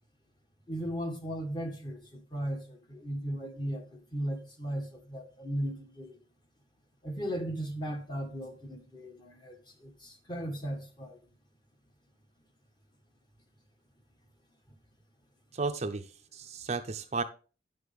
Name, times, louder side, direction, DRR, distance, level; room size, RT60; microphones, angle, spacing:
voice 1, 0.7-6.2 7.0-11.2, equal, 25° left, 1.5 m, -37 dB
voice 2, 15.5-17.2, right 4 dB, 35° right, 0.6 m, -34 dB
10.5 x 6.3 x 3.5 m
head